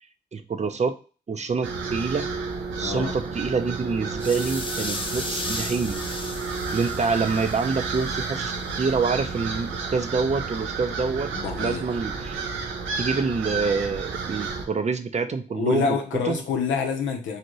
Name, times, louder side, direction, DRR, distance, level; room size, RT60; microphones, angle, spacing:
voice 1, 0.3-1.0 1.3-2.3 2.8-6.0 6.7-11.3 11.6-12.4 13.0-16.0 16.2-16.4, right 4 dB, 35° right, 8 dB, 0.5 m, -26 dB
sound 1, 1.6-14.7, right 4 dB, 90° right, 0.5 m, -31 dB
voice 2, 2.8-3.1 11.3-11.8 15.5-17.4, left 5 dB, 85° left, 3 dB, 0.6 m, -27 dB
sound 2, 4.2-8.3, left 2 dB, 25° left, 0.7 m, -35 dB
2.7 x 2.5 x 3.0 m, 0.36 s
supercardioid pair, 45°, 19 cm